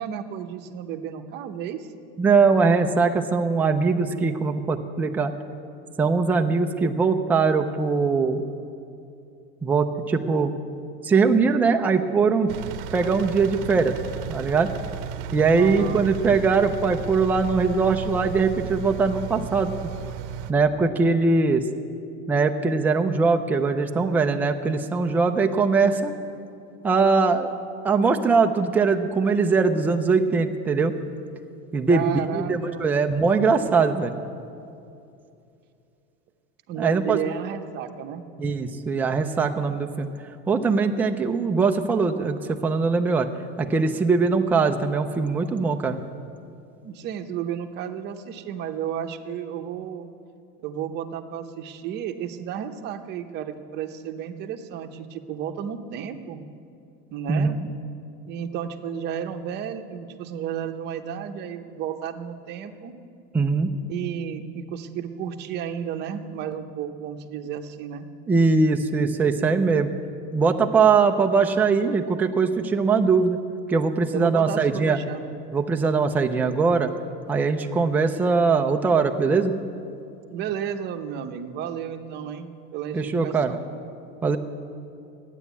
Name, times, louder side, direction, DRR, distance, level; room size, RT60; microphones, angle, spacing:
voice 1, 0.0-1.9 15.5-16.1 31.9-32.9 36.7-38.2 46.8-50.1 50.6-56.4 57.1-57.6 58.3-62.9 63.9-68.1 74.1-75.2 80.3-83.6, right 8 dB, 35° right, 7 dB, 0.8 m, -32 dB
voice 2, 2.2-5.3 6.0-8.4 9.6-10.5 11.0-12.5 12.9-13.9 14.3-14.7 15.3-19.7 20.5-21.7 22.3-26.1 26.8-27.5 27.8-31.0 31.7-34.1 36.8-37.2 38.4-40.1 40.5-43.3 43.6-46.0 57.3-57.5 63.3-63.7 68.3-69.9 70.3-73.4 73.7-75.0 75.5-76.9 77.3-79.5 82.9-83.6 84.2-84.4, right 4 dB, 5° right, 4 dB, 0.4 m, -21 dB
Engine, 12.5-20.5, right 9 dB, 65° right, 0.8 m, -34 dB
13.5 x 9.9 x 8.2 m, 2.6 s
cardioid pair, 165°, 29 cm